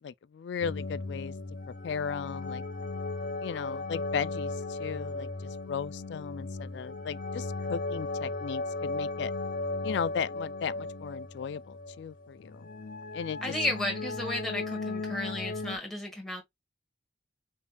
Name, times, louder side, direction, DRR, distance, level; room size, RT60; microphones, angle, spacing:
voice 1, 0.0-1.3 1.8-2.6 3.4-9.3 9.8-12.7 13.1-13.5, left 6 dB, 70° left, 0.3 m, -36 dB
sound 1, 0.6-15.8, left 3 dB, 45° left, 0.8 m, -36 dB
voice 2, 13.4-16.4, left 1 dB, ahead, 1.3 m, -33 dB
5.3 x 2.7 x 2.3 m
head